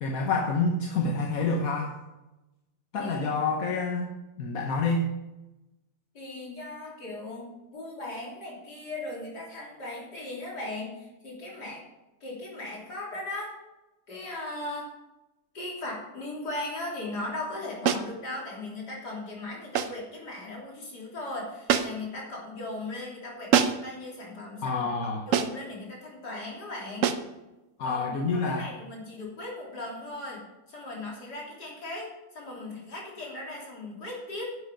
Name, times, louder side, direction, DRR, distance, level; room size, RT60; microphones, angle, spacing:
voice 1, 0.0-1.9 2.9-4.1 4.4-5.1 24.6-25.3 27.8-28.7, left 3 dB, 60° left, 1 dB, 1.5 m, -27 dB
voice 2, 3.0-3.4 6.1-11.8 12.2-13.5 14.1-14.9 15.5-24.9 25.3-27.1 27.8-30.4 30.7-34.5, left 2 dB, 85° left, -3 dB, 3.8 m, -38 dB
sound 1, 17.9-18.2 19.8-20.1 21.7-22.1 23.5-23.9 25.3-25.7 27.0-27.3, right 7 dB, 60° right, 1.0 m, -25 dB
11.0 x 8.2 x 5.2 m, 1.0 s
omnidirectional pair, 1.7 m